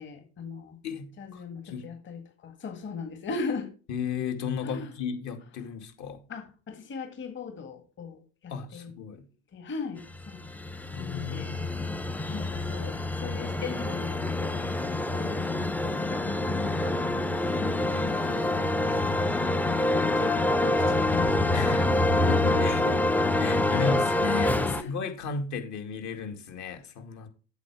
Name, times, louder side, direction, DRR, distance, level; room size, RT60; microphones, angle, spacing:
voice 1, 0.0-0.8 1.2-3.7 4.6-4.9 6.3-8.9 9.5-10.4 11.0-11.5 12.3-17.0 17.4-21.5 22.3-23.3 24.6-24.9, left 4 dB, 30° left, 1.9 m, -39 dB
voice 2, 0.8-1.8 3.9-6.2 8.5-9.2 10.9-11.7 21.5-22.8 23.4-27.3, left 6 dB, 50° left, 2.2 m, -34 dB
sound 1, 10.1-24.8, left 1 dB, 5° left, 0.5 m, -26 dB
8.3 x 7.1 x 4.8 m
hypercardioid pair, 90°, 37 cm